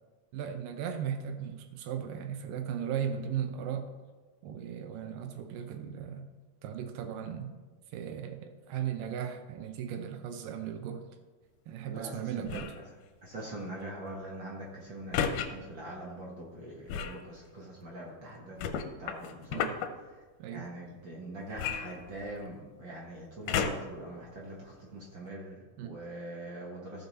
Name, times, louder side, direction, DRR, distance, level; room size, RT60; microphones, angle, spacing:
voice 1, 0.3-3.9 4.4-6.3 6.6-7.5 7.9-11.0 11.7-12.8 19.5-19.8 20.4-20.7 25.8-26.0, right 8 dB, 80° right, 7 dB, 2.2 m, -37 dB
voice 2, 11.8-12.8 13.2-19.6 20.5-27.1, right 1 dB, 55° right, -3 dB, 1.3 m, -43 dB
sound 1, 12.4-12.8 15.1-15.5 16.9-17.2 18.6-19.9 21.6-22.5 23.5-24.0 24.7-24.8, left 7 dB, 75° left, 2.1 m, -32 dB
14.5 x 5.5 x 4.1 m, 1.3 s
omnidirectional pair, 4.0 m